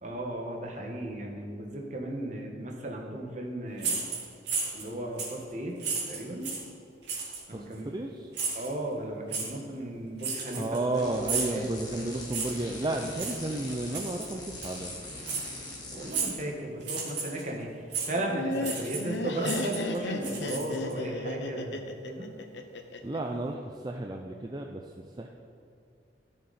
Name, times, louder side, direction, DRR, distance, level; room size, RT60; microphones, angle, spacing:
voice 1, 0.0-4.2 4.7-5.8 6.1-6.5 7.5-7.9 8.5-11.8 15.9-17.7 18.0-22.3, right 1 dB, 40° right, 0 dB, 1.5 m, -35 dB
sound 1, 3.8-4.9 5.2-5.4 5.8-6.7 7.1-7.4 8.3-8.7 9.3-9.5 10.2-10.9 11.3-11.6 12.3-12.7 13.2-13.4 13.9-14.3 14.6-14.8 15.2-15.5 16.1-16.4 16.8-17.4 17.9-18.1 18.6-19.1 19.4-20.9, right 5 dB, 80° right, 2.7 m, -33 dB
voice 2, 7.5-8.3 10.5-14.9 23.0-25.3, right 2 dB, 25° right, 2 dB, 0.4 m, -33 dB
sound 2, 10.9-16.3, left 1 dB, 20° left, 1.9 m, -42 dB
Laughter, 18.1-23.2, left 2 dB, 80° left, 0.8 m, -34 dB
13.5 x 6.8 x 4.2 m, 2.5 s
head